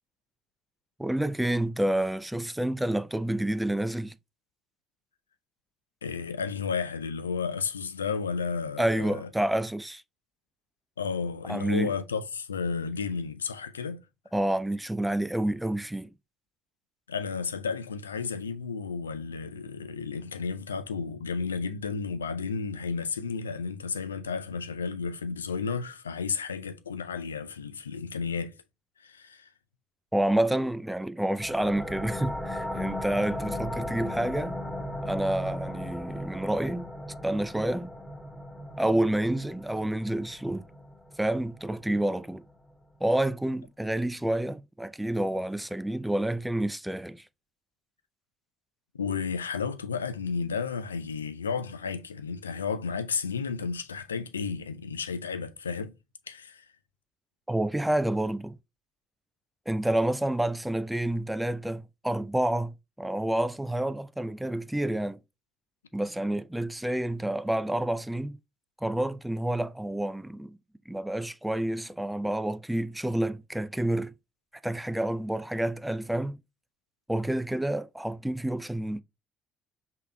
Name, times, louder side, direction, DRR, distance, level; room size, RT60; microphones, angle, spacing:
voice 1, 1.0-4.2 8.8-10.0 11.5-11.9 14.3-16.1 30.1-34.6 35.0-36.9 37.2-37.9 38.8-40.7 41.2-42.4 43.0-47.2 57.5-58.6 59.7-65.2 65.9-68.4 68.8-70.6 70.9-74.1 74.6-76.4 77.1-79.0, right 1 dB, 5° right, 0.4 m, -29 dB
voice 2, 6.0-9.3 11.0-14.0 17.1-28.5 29.0-29.5 48.9-55.9 56.3-56.6, left 5 dB, 90° left, 0.3 m, -32 dB
sound 1, 31.4-42.8, left 1 dB, 10° left, 1.2 m, -37 dB
5.5 x 3.8 x 2.2 m
figure-of-eight pair, 50°, 0 cm